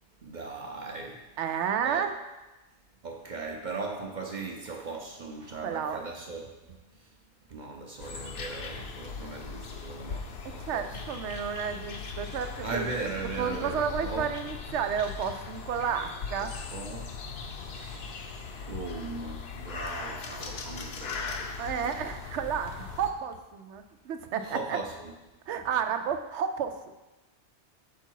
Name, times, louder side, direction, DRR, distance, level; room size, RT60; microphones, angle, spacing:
voice 1, 0.2-1.2 1.8-2.1 3.0-6.5 7.5-11.0 12.6-14.3 16.4-17.1 17.4-21.6 21.8-21.9 24.4-25.1, right 3 dB, 50° right, 1 dB, 0.7 m, -38 dB
voice 2, 1.4-2.1 5.6-6.0 10.6-13.1 13.4-16.5 21.6-24.8 25.5-26.7, right 7 dB, 85° right, 8 dB, 0.9 m, -31 dB
sound 1, 8.0-23.1, left 5 dB, 65° left, 0.9 m, -39 dB
6.9 x 4.6 x 4.6 m, 1.1 s
omnidirectional pair, 1.2 m